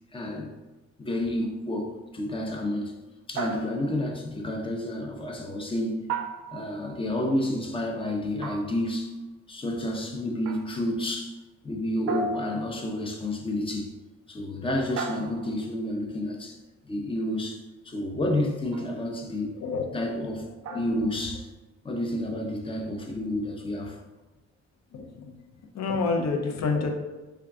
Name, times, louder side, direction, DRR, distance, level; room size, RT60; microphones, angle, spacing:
voice 1, 0.1-0.5 1.0-2.9 3.3-6.1 6.5-9.1 9.5-11.4 11.6-13.9 14.3-16.6 16.9-19.6 19.9-20.5 20.7-21.5 21.8-24.0, left 1 dB, 20° left, 1 dB, 0.5 m, -30 dB
sound 1, 3.4-4.1 6.1-6.9 8.4-9.0 10.5-10.9 12.1-13.0 15.0-15.8 18.7-19.1 20.6-21.2, right 4 dB, 60° right, 0.4 m, -35 dB
voice 2, 19.6-19.9 20.7-20.8 24.9-25.4 25.7-26.9, left 4 dB, 70° left, 3 dB, 0.6 m, -28 dB
3.6 x 2.3 x 3.5 m, 1.1 s
wide cardioid pair, 150°, 29 cm